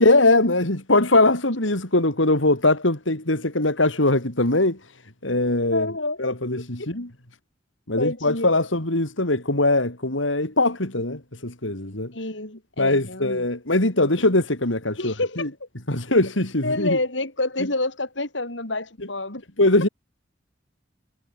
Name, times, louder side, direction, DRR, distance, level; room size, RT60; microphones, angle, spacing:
voice 1, 0.0-4.8 5.2-5.9 6.2-7.1 7.9-12.1 12.8-15.5 15.9-17.0 19.6-19.9, left 2 dB, 85° left, 4.5 m, -21 dB
voice 2, 5.7-6.2 6.8-6.9 8.0-8.5 12.1-13.5 15.0-15.5 16.6-19.4, left 2 dB, 70° left, 6.4 m, -28 dB
head